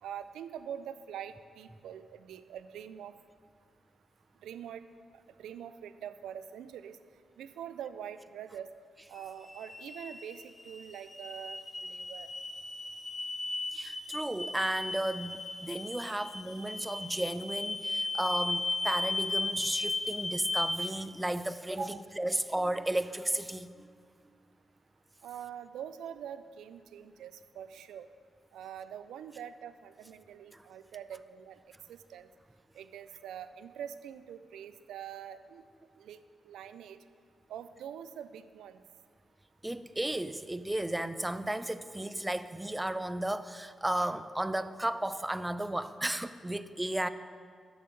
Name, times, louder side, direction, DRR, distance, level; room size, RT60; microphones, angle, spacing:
voice 1, 0.0-3.1 4.4-4.8 5.4-7.0 7.4-8.7 9.1-12.3 21.8-22.0 25.2-28.1 28.5-31.6 31.9-32.3 32.8-35.6 36.0-36.2 36.5-37.0 37.5-38.8, right 9 dB, 80° right, 12 dB, 0.4 m, -44 dB
sound 1, 9.1-20.9, left 2 dB, 30° left, 1.1 m, -36 dB
voice 2, 13.7-23.9 30.5-30.6 39.6-47.1, right 1 dB, 15° right, 13 dB, 0.6 m, -34 dB
11.5 x 6.9 x 5.1 m, 2.1 s
hypercardioid pair, 40°, 0 cm